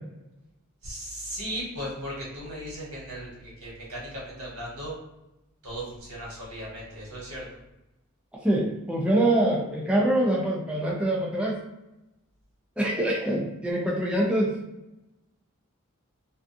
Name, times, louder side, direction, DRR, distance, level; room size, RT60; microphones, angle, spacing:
voice 1, 0.8-4.9 5.6-7.4, equal, 85° right, -5 dB, 1.2 m, -37 dB
voice 2, 8.4-11.6 12.8-14.6, right 1 dB, 5° right, -4 dB, 0.4 m, -24 dB
2.4 x 2.3 x 2.5 m, 0.94 s
head